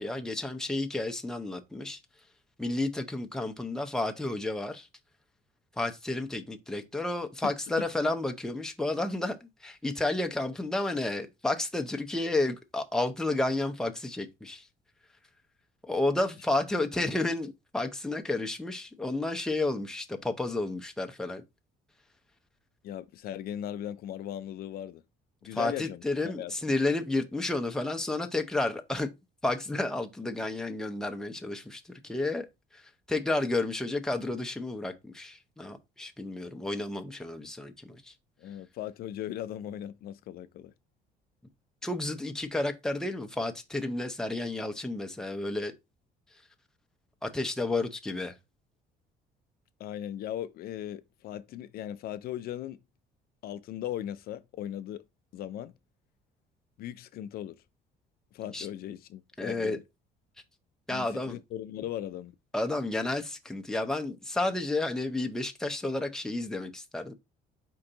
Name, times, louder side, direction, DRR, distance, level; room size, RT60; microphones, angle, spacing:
voice 1, 0.0-2.0 2.6-4.9 5.8-14.6 15.8-21.4 25.5-29.1 29.4-32.5 32.7-32.8 33.1-37.7 38.0-38.1 41.8-45.7 47.2-48.3 58.5-58.7 59.4-59.8 60.9-61.4 62.5-67.1, left 2 dB, 5° left, 0.6 m, -31 dB
voice 2, 7.4-7.9 22.8-25.0 25.4-26.7 38.4-40.7 49.8-52.8 53.4-55.0 55.3-55.7 56.8-57.6 58.3-59.8 60.9-62.3, left 11 dB, 65° left, 0.4 m, -38 dB
4.6 x 2.6 x 3.8 m
cardioid pair, 110°, 17 cm